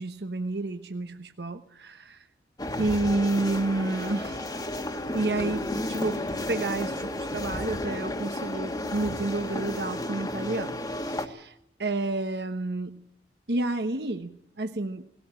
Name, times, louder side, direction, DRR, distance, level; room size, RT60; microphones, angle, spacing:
voice 1, 0.0-2.0 2.8-4.4 5.1-6.2 6.5-10.7 11.3-11.5 11.8-13.0 13.5-15.0, right 2 dB, 65° right, 7 dB, 1.1 m, -30 dB
sound 1, 2.6-11.3, left 1 dB, 20° left, 1.6 m, -32 dB
20.0 x 17.0 x 8.9 m, 0.78 s
head